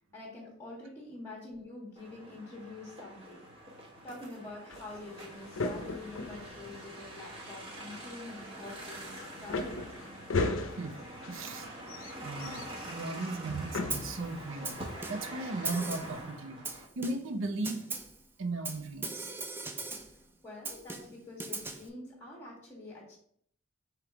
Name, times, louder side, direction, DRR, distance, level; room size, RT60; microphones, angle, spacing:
voice 1, 0.1-3.5 4.0-9.6 20.4-23.2, left 2 dB, 15° left, -3 dB, 1.0 m, -46 dB
sound 1, 2.0-16.9, right 1 dB, 30° right, 1.0 m, -45 dB
sound 2, 4.7-16.2, left 3 dB, 85° left, 0.5 m, -39 dB
voice 2, 11.3-11.7 12.2-17.8 18.4-19.3, right 2 dB, 75° right, 7 dB, 0.6 m, -37 dB
Snare drum, 13.9-14.2 14.6-15.4 15.6-16.2 16.6-17.4 17.6-18.2 18.6-20.2 20.6-21.9, right 3 dB, 10° right, 0.4 m, -39 dB
3.4 x 3.1 x 4.7 m, 0.64 s
head